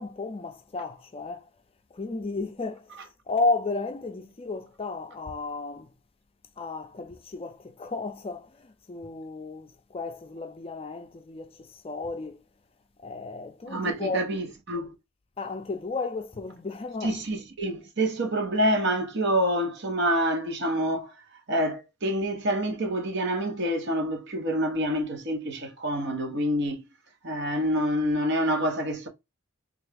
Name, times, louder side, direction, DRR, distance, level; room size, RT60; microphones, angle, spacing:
voice 1, 0.0-1.5 1.9-5.9 6.6-12.4 13.0-14.3 15.4-17.2, left 3 dB, 30° left, 0.4 m, -33 dB
voice 2, 13.7-14.9 17.0-21.1 21.5-26.8 27.2-29.1, equal, 55° right, 0.9 m, -27 dB
3.5 x 2.4 x 3.3 m
head